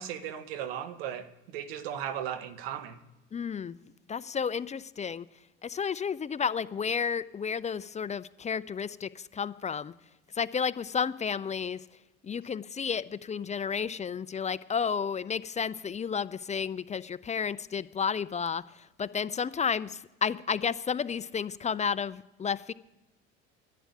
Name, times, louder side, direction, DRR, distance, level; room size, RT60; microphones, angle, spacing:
voice 1, 0.0-3.0, right 9 dB, 85° right, 1.4 m, -36 dB
voice 2, 3.3-3.8 4.1-5.3 5.6-9.9 10.3-11.8 12.2-18.6 19.0-22.7, left 6 dB, 25° left, 0.5 m, -32 dB
11.0 x 8.5 x 9.8 m
supercardioid pair, 85°, 29 cm